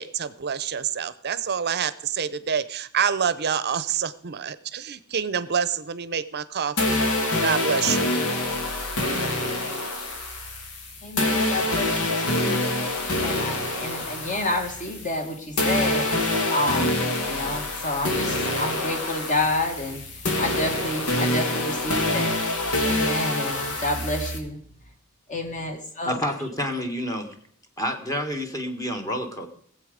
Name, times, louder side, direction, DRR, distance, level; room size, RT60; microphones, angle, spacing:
voice 1, 0.0-7.0 7.4-8.1, right 7 dB, 45° right, 15 dB, 0.6 m, -27 dB
sound 1, 6.8-15.3 15.6-24.4, left 2 dB, 85° left, 2.0 m, -26 dB
voice 2, 11.0-12.6 13.2-17.0 17.3-22.4 22.8-24.6 25.3-26.3, left 1 dB, 35° left, 5 dB, 1.9 m, -29 dB
voice 3, 26.1-27.4 27.8-29.5, equal, 15° left, 4 dB, 1.4 m, -29 dB
18.0 x 7.8 x 5.1 m, 0.62 s
head